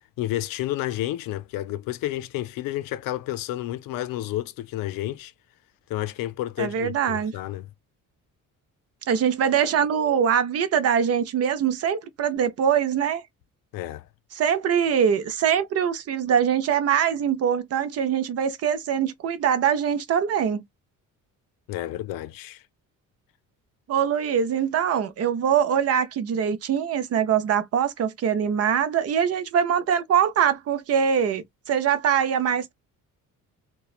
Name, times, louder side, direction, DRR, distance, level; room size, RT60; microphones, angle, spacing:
voice 1, 0.2-5.3 5.9-7.7 13.7-14.1 21.7-22.6, left 14 dB, 80° left, 0.5 m, -30 dB
voice 2, 6.6-7.3 9.1-13.2 14.3-20.6 23.9-32.7, right 8 dB, 45° right, 0.6 m, -23 dB
3.0 x 2.2 x 2.3 m
cardioid pair, 140°, 33 cm